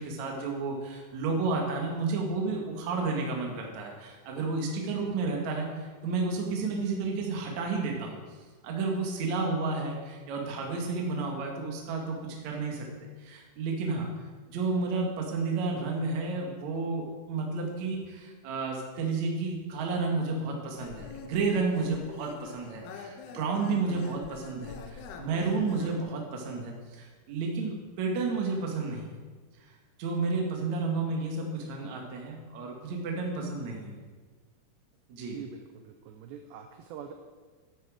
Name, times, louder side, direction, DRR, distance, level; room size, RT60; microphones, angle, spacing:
voice 1, 0.0-8.1 8.6-12.9 13.2-14.1 14.5-29.1 30.0-34.0 35.1-35.4, right 4 dB, 60° right, 0 dB, 1.9 m, -31 dB
sound 1, 20.8-26.0, left 6 dB, 80° left, 2.4 m, -45 dB
voice 2, 35.3-37.1, right 8 dB, 80° right, 5 dB, 2.5 m, -44 dB
12.0 x 8.0 x 4.9 m, 1.4 s
omnidirectional pair, 5.7 m